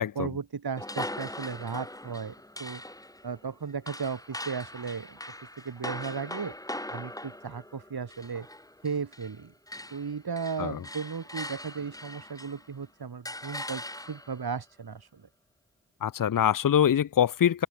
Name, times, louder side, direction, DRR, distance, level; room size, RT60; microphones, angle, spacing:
voice 1, 0.2-2.3 2.6-2.8 3.2-5.2 5.6-6.5 6.9-8.5 8.8-9.5 9.9-15.2, right 5 dB, 80° right, 2.4 m, -35 dB
sound 1, 0.8-9.4 9.7-12.7 13.3-14.5, left 1 dB, 10° left, 1.5 m, -41 dB
voice 2, 16.0-17.7, left 9 dB, 60° left, 0.6 m, -24 dB
open air
cardioid pair, 45°, 37 cm